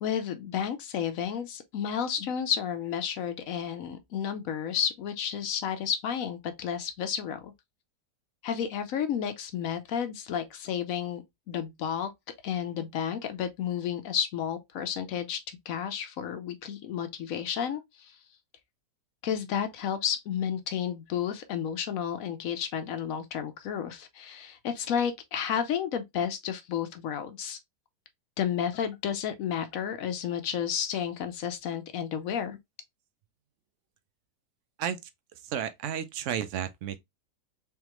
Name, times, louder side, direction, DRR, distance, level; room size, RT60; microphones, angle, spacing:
voice 1, 0.0-7.5 8.4-12.1 12.4-15.4 15.7-18.2 19.2-27.6 28.4-32.6, left 8 dB, 65° left, 0.9 m, -31 dB
voice 2, 35.4-37.0, right 9 dB, 75° right, 0.7 m, -32 dB
3.6 x 3.5 x 3.0 m
omnidirectional pair, 1.8 m